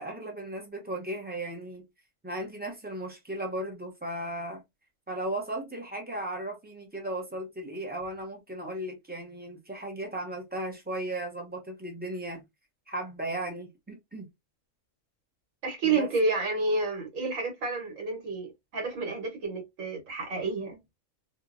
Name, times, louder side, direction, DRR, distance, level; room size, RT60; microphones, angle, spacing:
voice 1, 0.0-1.9 2.2-4.6 5.1-12.4 12.9-14.3 15.8-16.1, right 1 dB, 15° right, 0.3 m, -36 dB
voice 2, 15.6-20.8, right 3 dB, 80° right, 1.4 m, -30 dB
2.9 x 2.0 x 2.4 m
omnidirectional pair, 1.4 m